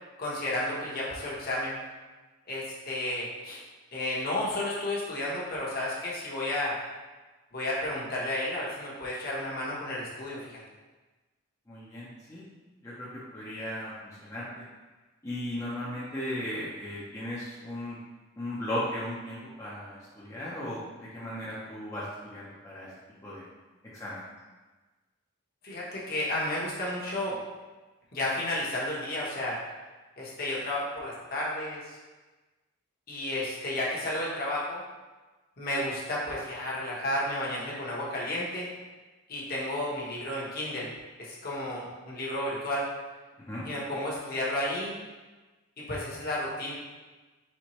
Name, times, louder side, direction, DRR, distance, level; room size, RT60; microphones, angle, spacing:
voice 1, 0.2-1.8 2.5-3.6 3.9-6.7 7.5-10.6 25.6-27.4 28.1-29.6 30.2-32.0 33.1-34.8 35.6-38.7 39.3-40.9 41.2-42.8 43.6-45.0 45.9-46.7, left 1 dB, 45° left, -6 dB, 1.0 m, -32 dB
voice 2, 11.7-12.4 12.8-13.1 13.3-14.6 15.2-18.0 18.4-22.9 23.2-23.4 23.9-24.2 43.4-43.6, left 1 dB, 15° left, -9 dB, 0.6 m, -36 dB
4.4 x 3.4 x 3.0 m, 1.2 s
head